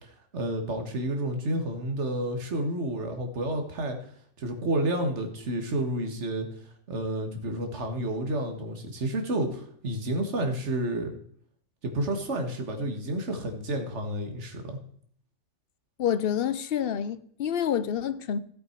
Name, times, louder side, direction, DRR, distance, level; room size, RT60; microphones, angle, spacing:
voice 1, 0.0-4.0 4.4-6.5 6.9-11.1 11.8-14.8, right 1 dB, 50° right, 1.9 m, -30 dB
voice 2, 16.0-18.4, left 9 dB, 55° left, 0.7 m, -28 dB
14.0 x 7.9 x 4.5 m
omnidirectional pair, 1.5 m